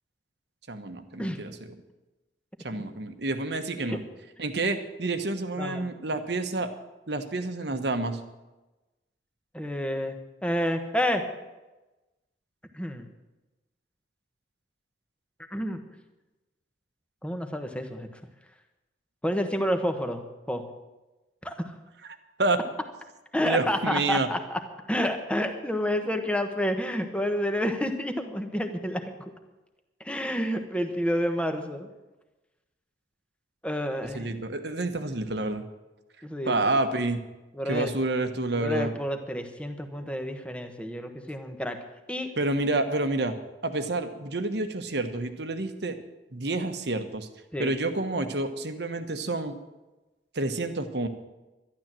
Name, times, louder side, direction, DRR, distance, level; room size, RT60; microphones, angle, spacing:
voice 1, 0.7-1.6 2.6-4.0 4.4-6.7 7.1-8.2 22.4-22.6 23.4-24.3 34.1-35.7 36.4-37.2 37.7-38.9 42.4-43.3 43.6-46.0 46.3-47.3 47.6-49.6 50.3-51.1, right 2 dB, 60° right, 8 dB, 1.2 m, -28 dB
voice 2, 9.5-11.2 12.7-13.1 15.5-15.8 17.2-18.1 19.2-20.2 20.5-20.6 21.4-21.5 23.3-24.6 24.9-29.0 30.0-31.9 33.6-34.3 36.2-36.8 37.5-37.9 38.5-41.8 42.1-42.3 47.5-47.7, equal, 5° left, 6 dB, 1.1 m, -29 dB
12.0 x 11.5 x 7.6 m, 1.1 s
head